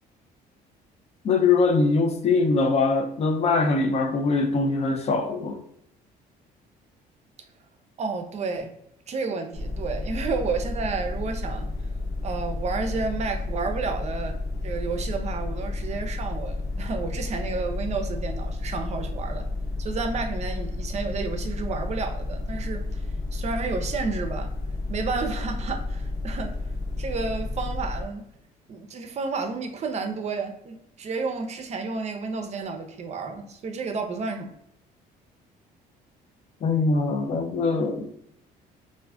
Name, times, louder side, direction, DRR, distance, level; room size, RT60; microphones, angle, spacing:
voice 1, 1.2-5.6 36.6-38.1, left 3 dB, 40° left, 0.4 m, -22 dB
voice 2, 8.0-8.7 9.1-11.7 12.2-14.4 14.6-19.4 19.8-23.0 23.3-24.5 24.9-26.5 27.0-28.2 28.7-34.5, right 4 dB, 40° right, 0.5 m, -31 dB
sound 1, 9.5-28.0, left 2 dB, 80° left, 1.0 m, -31 dB
2.5 x 2.4 x 3.3 m
cardioid pair, 110°, 17 cm